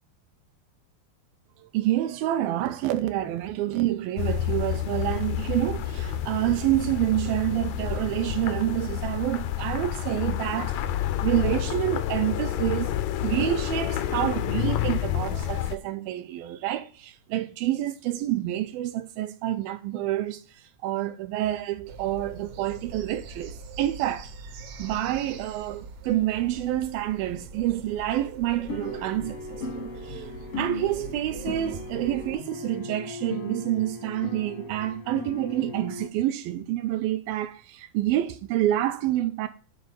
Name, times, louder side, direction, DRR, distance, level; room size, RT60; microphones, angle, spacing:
voice 1, 1.6-10.9 11.2-12.9 13.2-24.3 24.8-30.3 30.6-39.5, right 14 dB, 80° right, 2.3 m, -28 dB
sound 1, 4.2-15.8, left 11 dB, 90° left, 1.7 m, -29 dB
sound 2, 21.9-32.3, right 4 dB, 65° right, 2.0 m, -43 dB
sound 3, 28.7-36.1, left 3 dB, 75° left, 1.4 m, -37 dB
7.9 x 3.9 x 6.6 m
omnidirectional pair, 4.3 m